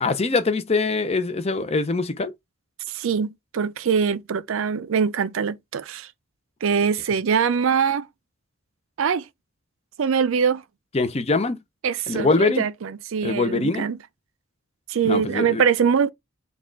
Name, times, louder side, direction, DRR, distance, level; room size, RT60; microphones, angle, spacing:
voice 1, 0.0-2.3 10.9-11.6 12.1-12.6 13.2-13.8 15.0-15.6, left 3 dB, 30° left, 0.6 m, -23 dB
voice 2, 2.9-6.1 6.6-8.1 9.0-9.3 10.0-10.6 11.8-14.0 14.9-16.1, right 6 dB, 70° right, 0.4 m, -23 dB
4.2 x 2.3 x 3.8 m
head